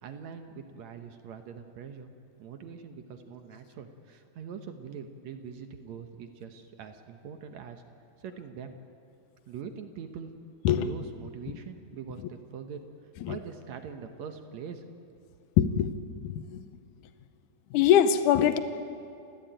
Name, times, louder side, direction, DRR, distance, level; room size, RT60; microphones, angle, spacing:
voice 1, 0.0-2.1 2.4-7.8 8.2-8.8 9.5-10.3 10.7-12.8 13.3-15.2, right 6 dB, 65° right, 6 dB, 2.2 m, -43 dB
voice 2, 15.6-15.9 16.2-16.6 17.7-18.6, left 9 dB, 80° left, 11 dB, 2.3 m, -23 dB
29.5 x 14.5 x 9.0 m, 2.6 s
omnidirectional pair, 3.6 m